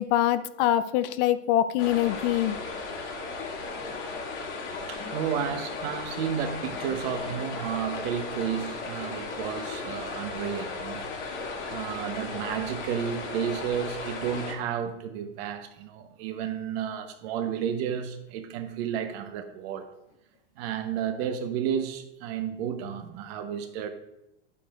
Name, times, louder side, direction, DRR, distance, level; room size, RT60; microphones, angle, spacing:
voice 1, 0.0-2.6, left 12 dB, 50° left, 13 dB, 0.5 m, -24 dB
sound 1, 1.8-14.5, left 3 dB, 80° left, 2.4 m, -36 dB
voice 2, 4.9-11.1 11.7-19.9 20.6-23.9, right 8 dB, 55° right, 7 dB, 1.2 m, -32 dB
10.0 x 8.3 x 2.5 m, 0.85 s
hypercardioid pair, 110°, 35 cm